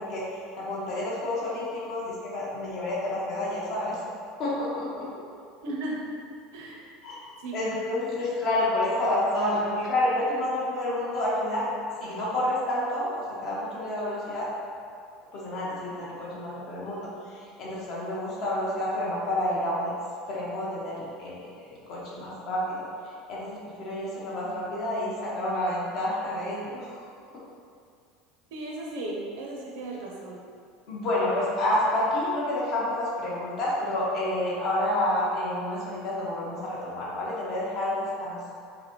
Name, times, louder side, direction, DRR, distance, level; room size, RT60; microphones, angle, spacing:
voice 1, 0.0-4.0 4.4-5.2 7.0-11.7 12.0-14.5 15.3-19.9 20.3-27.1 27.3-27.4 30.9-38.5, left 1 dB, 40° left, -6 dB, 1.0 m, -29 dB
voice 2, 5.6-6.1 6.5-6.8 7.4-7.6 28.5-30.4, right 2 dB, 75° right, -2 dB, 0.7 m, -35 dB
5.0 x 2.2 x 3.1 m, 2.3 s
cardioid pair, 160°, 0 cm